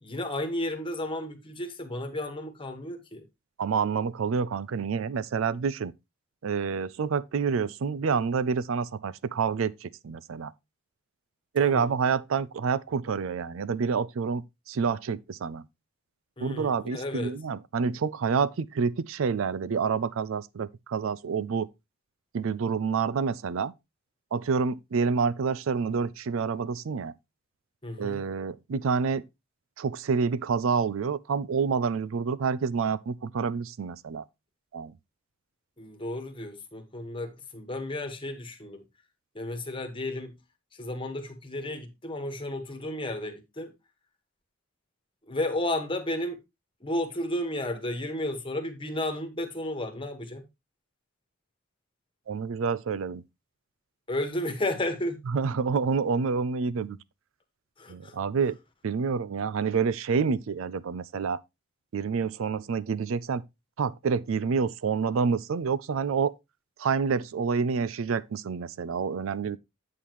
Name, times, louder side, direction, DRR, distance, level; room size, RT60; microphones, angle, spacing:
voice 1, 0.0-3.2 11.6-11.9 16.4-17.3 27.8-28.2 35.8-38.8 39.3-40.3 40.8-43.7 45.3-46.4 46.8-50.4 54.1-55.2 57.8-58.1, left 1 dB, 25° left, 1.4 m, -33 dB
voice 2, 3.6-5.9 6.4-10.5 11.5-15.7 16.4-21.7 22.3-23.7 24.3-27.1 28.0-29.2 29.8-34.2 34.7-34.9 52.3-53.2 55.3-57.0 57.9-58.6 58.8-61.4 61.9-63.4 63.8-66.3 66.8-69.6, right 5 dB, 65° right, 0.4 m, -28 dB
8.4 x 7.3 x 3.0 m
head